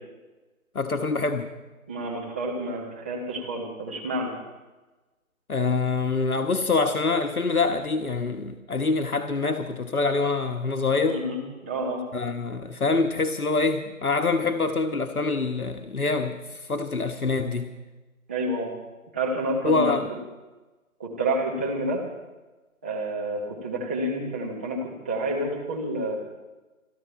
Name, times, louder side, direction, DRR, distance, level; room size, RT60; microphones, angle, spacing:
voice 1, 0.7-1.5 5.5-11.2 12.1-17.7 19.6-20.1, left 3 dB, 80° left, 5 dB, 1.3 m, -25 dB
voice 2, 1.9-4.3 11.1-12.0 18.3-18.7 19.1-20.0 21.0-22.0 22.8-26.2, right 1 dB, 10° right, -3 dB, 1.0 m, -29 dB
27.5 x 10.5 x 4.4 m, 1.2 s
figure-of-eight pair, 155°, 43 cm